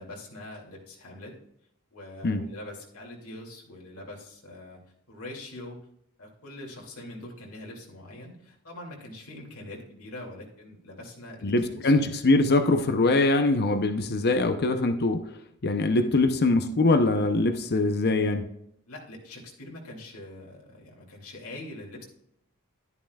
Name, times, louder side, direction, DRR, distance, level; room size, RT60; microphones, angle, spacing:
voice 1, 0.0-1.3 1.9-4.8 5.1-5.9 6.2-11.5 11.8-12.0 18.9-22.0, left 1 dB, 70° left, -1 dB, 2.5 m, -43 dB
voice 2, 11.4-15.3 15.6-18.5, left 2 dB, 45° left, 8 dB, 0.7 m, -23 dB
11.5 x 10.5 x 2.3 m, 0.78 s
head